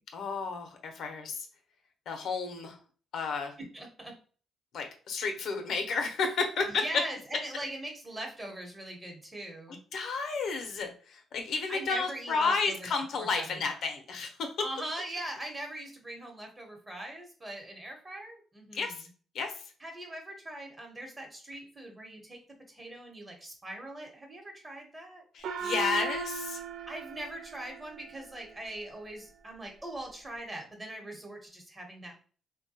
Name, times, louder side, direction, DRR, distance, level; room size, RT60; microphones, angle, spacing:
voice 1, 0.1-1.4 2.1-2.8 3.1-3.5 4.7-6.8 9.9-14.3 18.7-19.1 19.3-19.5 25.3-26.6, left 4 dB, 70° left, 4 dB, 0.6 m, -32 dB
voice 2, 3.6-4.1 6.6-9.8 11.7-13.7 14.6-19.1 19.8-22.4 22.7-25.2 26.9-32.2, right 1 dB, 20° right, 2 dB, 1.0 m, -41 dB
Gong, 25.4-28.3, right 5 dB, 70° right, 0.3 m, -37 dB
3.2 x 2.2 x 2.7 m, 0.40 s
cardioid pair, 90°, 0 cm